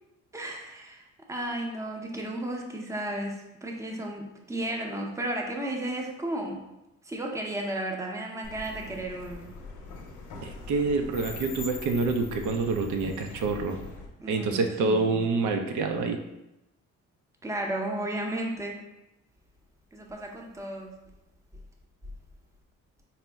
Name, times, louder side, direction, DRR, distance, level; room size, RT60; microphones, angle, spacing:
voice 1, 0.3-6.6 7.0-9.5 14.2-15.3 17.4-18.8 19.9-20.9, right 1 dB, 10° right, 1 dB, 0.6 m, -34 dB
sound 1, 8.4-14.1, left 3 dB, 75° left, 0.7 m, -42 dB
voice 2, 10.4-13.8 14.3-16.2, right 3 dB, 75° right, 4 dB, 0.5 m, -27 dB
4.2 x 2.0 x 3.4 m, 0.94 s
cardioid pair, 90°, 30 cm